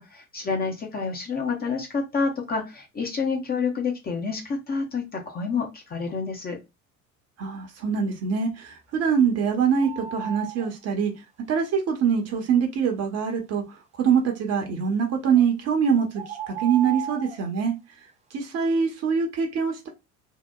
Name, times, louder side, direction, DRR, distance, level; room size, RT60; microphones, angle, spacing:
voice 1, 0.0-6.6, left 4 dB, 20° left, 0.7 m, -28 dB
voice 2, 7.4-11.1 11.5-13.6 13.9-17.7 18.3-19.9, right 6 dB, 35° right, 0.8 m, -24 dB
sound 1, 9.8-10.7 15.3-15.5 16.1-17.4, right 10 dB, 15° right, 0.4 m, -34 dB
2.8 x 2.0 x 2.2 m
figure-of-eight pair, 65°, 42 cm